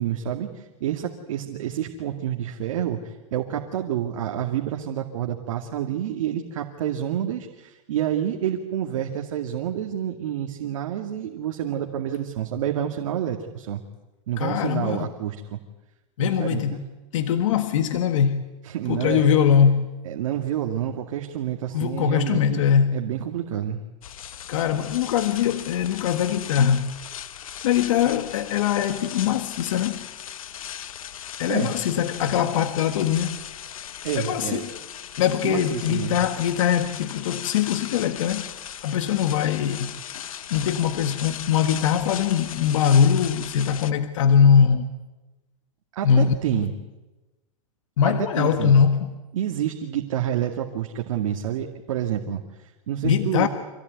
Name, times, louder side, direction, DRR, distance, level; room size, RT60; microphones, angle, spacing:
voice 1, 0.0-13.8 14.3-15.6 16.2-16.8 18.6-19.4 20.0-22.6 22.9-23.8 31.5-31.8 34.0-34.6 35.4-36.2 46.0-46.7 48.4-48.7 49.3-53.5, right 10 dB, 70° right, 3 dB, 2.3 m, -28 dB
voice 2, 14.4-15.1 16.2-16.8 17.1-18.4 18.9-19.9 21.7-23.0 24.5-26.9 27.6-30.0 31.4-33.4 34.2-34.7 35.2-38.5 38.8-44.9 46.0-46.6 48.0-49.1 53.0-53.5, left 8 dB, 70° left, 8 dB, 1.6 m, -22 dB
sound 1, 24.0-43.9, left 10 dB, 85° left, 1.2 m, -37 dB
26.0 x 17.5 x 9.5 m, 1.1 s
supercardioid pair, 145°, 17 cm